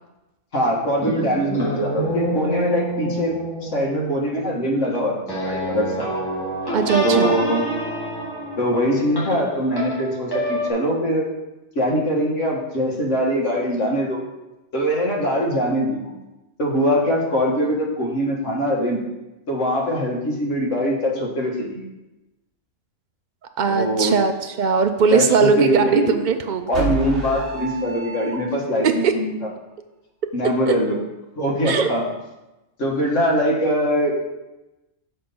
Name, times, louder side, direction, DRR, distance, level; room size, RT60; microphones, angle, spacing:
voice 1, 0.5-3.3 3.6-6.1 7.0-7.6 8.6-11.3 11.8-14.2 14.7-16.1 16.6-19.0 19.5-21.9 23.7-24.2 25.1-26.1 26.7-29.3 30.3-31.0 31.4-32.0 32.8-34.2, equal, 65° left, -2 dB, 1.8 m, -22 dB
Floyd Filtertron Harmonic Bendy thing, 1.0-10.7, right 1 dB, 15° left, 1.8 m, -28 dB
voice 2, 6.7-7.4 23.6-26.9 28.8-29.1 30.7-30.8 31.6-31.9, right 6 dB, 75° right, 7 dB, 0.4 m, -20 dB
sound 1, 26.7-28.8, right 1 dB, 45° right, 2.4 m, -29 dB
6.4 x 4.6 x 5.4 m, 1.0 s
omnidirectional pair, 1.4 m